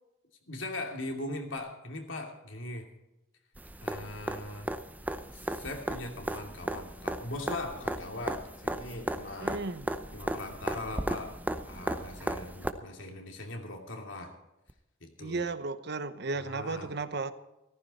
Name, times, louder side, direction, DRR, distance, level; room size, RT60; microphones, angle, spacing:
voice 1, 0.5-2.9 3.8-4.7 5.3-9.6 10.1-11.4 11.7-14.3 15.0-15.4 16.4-16.9, left 2 dB, 80° left, 2.7 m, -40 dB
sound 1, 3.6-12.7 14.7-14.8, right 1 dB, 10° right, 0.7 m, -36 dB
voice 2, 9.4-9.9 15.2-17.3, right 3 dB, 60° right, 0.9 m, -34 dB
15.0 x 14.5 x 4.2 m
head